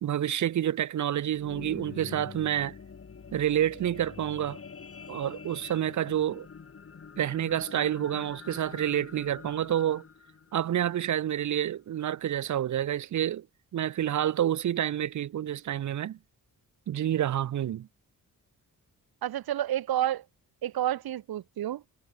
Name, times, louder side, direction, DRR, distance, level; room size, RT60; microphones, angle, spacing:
voice 1, 0.0-2.7 3.3-4.6 5.1-6.5 7.2-10.0 10.5-13.5 13.7-16.2 16.9-17.9, right 11 dB, 55° right, 0.5 m, -28 dB
sound 1, 1.1-11.6 12.2-12.3, left 5 dB, 40° left, 1.7 m, -46 dB
voice 2, 19.2-20.2 20.6-21.8, right 12 dB, 85° right, 1.1 m, -29 dB
cardioid pair, 80°, 36 cm